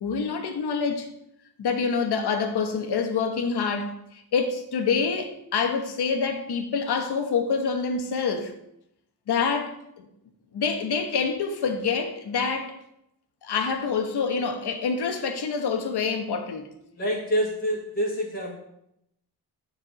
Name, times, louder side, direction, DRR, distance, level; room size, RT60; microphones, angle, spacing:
voice 1, 0.0-1.1 1.6-8.5 9.3-10.1 10.5-12.8 13.4-16.7, left 5 dB, 75° left, 1.3 m, -26 dB
voice 2, 17.0-18.6, equal, 30° left, 2.3 m, -27 dB
7.4 x 4.8 x 6.9 m
cardioid pair, 80°, 40 cm